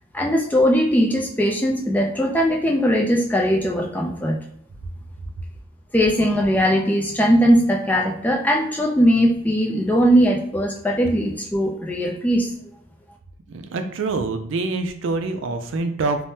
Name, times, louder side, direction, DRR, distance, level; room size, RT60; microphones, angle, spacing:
voice 1, 0.1-4.4 5.9-12.5, equal, 10° left, -1 dB, 0.3 m, -19 dB
voice 2, 13.5-16.2, right 3 dB, 70° right, 7 dB, 0.4 m, -25 dB
3.3 x 2.1 x 2.7 m, 0.70 s
head